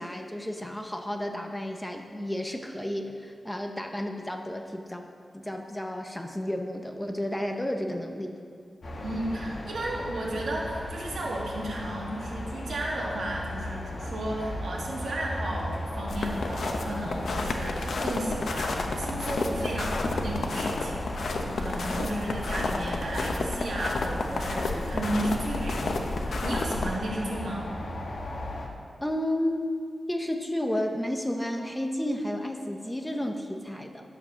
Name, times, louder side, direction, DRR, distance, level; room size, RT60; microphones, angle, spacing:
voice 1, 0.0-5.0 5.3-8.4 29.0-29.7 30.1-34.0, left 1 dB, 10° left, 3 dB, 0.8 m, -32 dB
sound 1, 8.8-28.7, left 1 dB, 55° left, 1.5 m, -36 dB
voice 2, 9.0-27.7, right 1 dB, 90° right, -3 dB, 2.3 m, -34 dB
sound 2, 16.1-26.9, left 3 dB, 75° left, 0.9 m, -31 dB
11.5 x 7.3 x 6.2 m, 2.2 s
wide cardioid pair, 130°, 0 cm